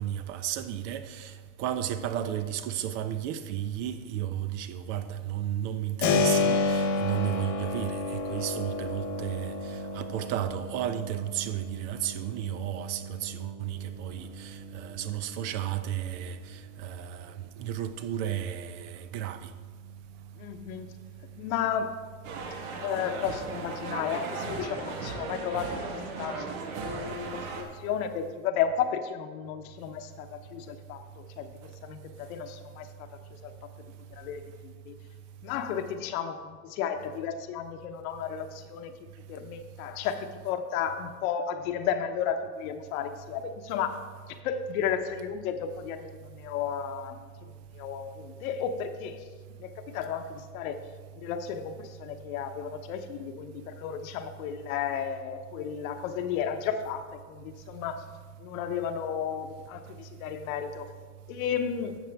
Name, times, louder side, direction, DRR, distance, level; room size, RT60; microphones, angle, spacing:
voice 1, 0.0-1.3 1.6-9.5 9.9-16.4 16.8-17.3 17.6-19.4, right 11 dB, 55° right, 0.7 m, -33 dB
Keyboard (musical), 6.0-16.7, left 3 dB, 80° left, 1.6 m, -32 dB
voice 2, 20.4-20.9 21.4-22.0 22.8-26.5 26.8-33.5 34.1-35.0 35.4-38.9 39.3-44.0 44.4-49.2 49.6-50.8 51.2-58.0 58.4-60.9 61.3-62.0, left 8 dB, 65° left, 1.0 m, -33 dB
sound 1, 22.2-27.6, right 3 dB, 70° right, 1.6 m, -36 dB
12.5 x 7.6 x 3.5 m
supercardioid pair, 120°, 45 cm